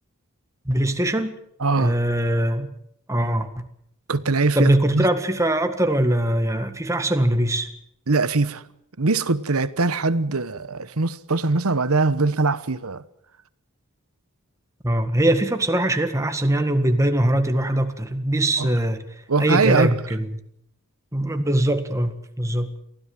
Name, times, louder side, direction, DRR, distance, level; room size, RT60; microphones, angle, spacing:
voice 1, 0.6-1.4 1.8-2.7 3.1-3.6 4.5-7.7 14.8-19.0 19.4-20.3 21.1-22.7, right 1 dB, 15° right, 1.7 m, -21 dB
voice 2, 1.6-2.0 4.1-5.1 8.1-8.6 9.0-13.0 18.6-18.7 19.3-20.0, right 3 dB, 75° right, 1.1 m, -22 dB
23.5 x 16.0 x 7.7 m
head